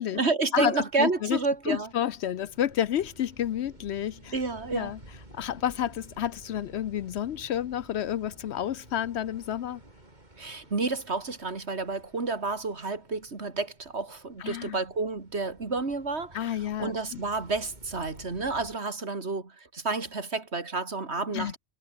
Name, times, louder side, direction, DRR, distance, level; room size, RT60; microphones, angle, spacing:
voice 1, 0.0-1.9 4.3-4.9 10.4-16.5 16.8-21.6, right 3 dB, 60° right, 2.8 m, -30 dB
sound 1, 0.9-18.8, right 1 dB, 35° right, 4.5 m, -53 dB
voice 2, 1.0-1.4 1.7-4.3 4.7-5.0 5.3-9.8 14.4-14.8 16.3-17.2 21.3-21.6, left 10 dB, 65° left, 0.9 m, -30 dB
omnidirectional pair, 1.3 m